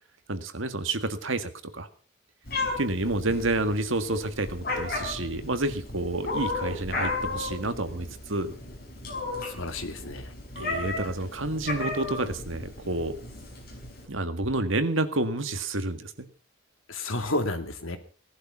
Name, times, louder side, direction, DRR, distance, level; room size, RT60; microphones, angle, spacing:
voice 1, 0.3-1.9 2.8-8.5 10.6-13.2 14.1-16.1, right 2 dB, 75° right, 9 dB, 1.8 m, -29 dB
Meow, 2.5-14.1, left 2 dB, 45° left, 5.6 m, -34 dB
voice 2, 9.4-10.3 16.9-18.0, left 2 dB, 80° left, 7 dB, 2.5 m, -31 dB
18.0 x 12.0 x 5.8 m, 0.42 s
head